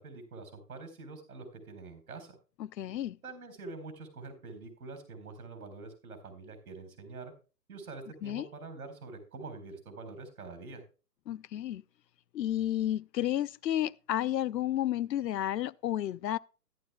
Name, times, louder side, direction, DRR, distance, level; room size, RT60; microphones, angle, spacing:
voice 1, 0.0-2.4 3.2-7.3 7.7-10.8, right 3 dB, 60° right, 4.2 m, -45 dB
voice 2, 2.6-3.2 8.2-8.5 11.3-11.8 12.3-16.4, left 12 dB, 85° left, 0.6 m, -31 dB
13.5 x 11.5 x 2.3 m
hypercardioid pair, 175°, 49 cm